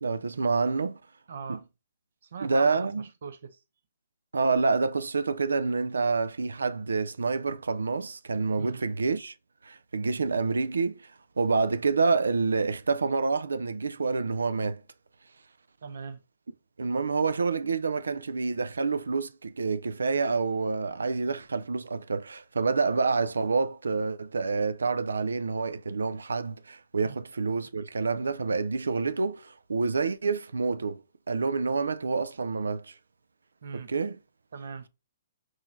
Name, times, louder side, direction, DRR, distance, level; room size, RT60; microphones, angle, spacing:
voice 1, 0.0-1.0 1.5-1.6 2.4-3.0 4.3-9.3 9.6-11.1 11.4-14.8 16.8-31.0 31.3-32.9 33.7-34.2, right 4 dB, 90° right, 0.3 m, -28 dB
voice 2, 1.3-1.6 2.2-3.6 8.6-8.8 15.8-16.2 27.0-27.2 33.6-33.9 34.5-34.9, right 5 dB, 70° right, 0.8 m, -40 dB
4.6 x 3.8 x 2.5 m
hypercardioid pair, 140°, 0 cm